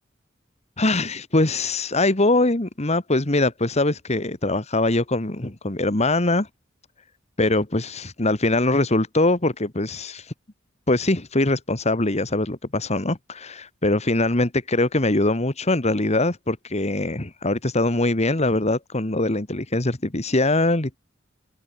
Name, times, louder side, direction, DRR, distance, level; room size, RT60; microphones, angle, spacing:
voice 1, 0.8-6.5 7.4-10.3 10.9-21.0, left 2 dB, 35° left, 1.9 m, -22 dB
head